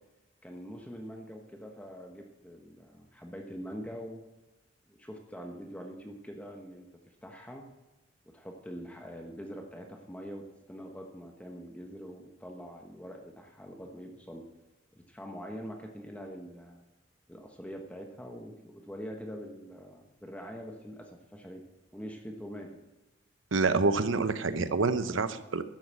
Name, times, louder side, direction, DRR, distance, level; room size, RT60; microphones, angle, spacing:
voice 1, 0.4-4.2 4.9-7.7 8.2-14.5 15.1-16.8 17.3-21.6 21.9-22.8, equal, 5° left, 2 dB, 1.1 m, -44 dB
voice 2, 23.5-25.6, right 3 dB, 90° right, 12 dB, 0.8 m, -27 dB
12.0 x 8.0 x 7.4 m, 1.1 s
head